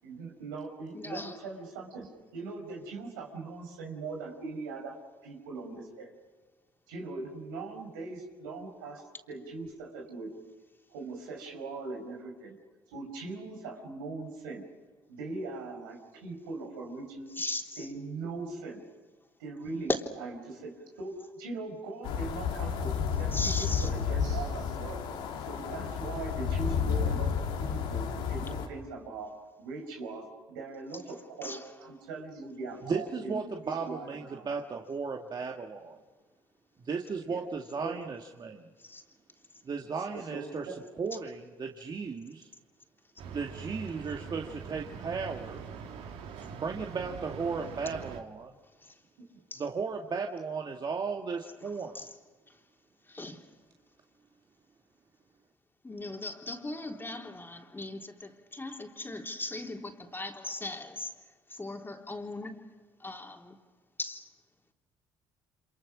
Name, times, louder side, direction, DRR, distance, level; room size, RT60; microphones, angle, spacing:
voice 1, 0.0-6.1 6.9-10.5 10.9-12.6 12.9-14.6 15.1-17.3 17.8-18.8 19.4-19.9 20.2-25.0 25.4-33.4 33.6-34.5 37.3-37.5 37.8-38.0 40.1-40.8 49.2-49.3, right 3 dB, 90° right, 5.3 m, -40 dB
voice 2, 0.9-1.4 17.4-17.9 23.3-23.9 31.4-31.6 38.8-39.0 48.8-48.9 49.5-49.6 51.6-51.7 51.9-52.1 53.1-53.4 55.8-61.1 61.5-62.7 63.0-63.6 64.0-64.3, left 2 dB, 20° left, 3.7 m, -39 dB
sound 1, 22.0-28.7, left 6 dB, 80° left, 3.1 m, -31 dB
voice 3, 32.8-36.0 36.8-38.7 39.6-40.7 41.0-42.5 43.3-45.6 46.5-48.5 49.6-52.0, right 5 dB, 40° right, 2.1 m, -35 dB
sound 2, 43.2-48.2, right 6 dB, 70° right, 2.4 m, -43 dB
29.0 x 27.0 x 6.3 m
hypercardioid pair, 60°, 11 cm